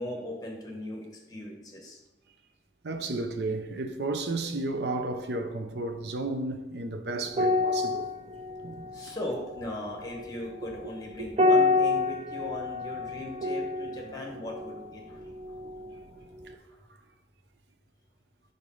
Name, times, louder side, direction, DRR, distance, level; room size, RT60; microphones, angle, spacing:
voice 1, 0.0-2.0 8.9-15.3, left 1 dB, 20° left, 1.2 m, -38 dB
voice 2, 2.8-8.1 9.0-9.1 10.6-10.7 11.2-11.3 16.5-16.6, right 2 dB, 70° right, 0.6 m, -33 dB
sound 1, 7.3-16.0 16.3-16.5, left 3 dB, 35° right, 0.5 m, -29 dB
5.0 x 4.0 x 5.5 m
head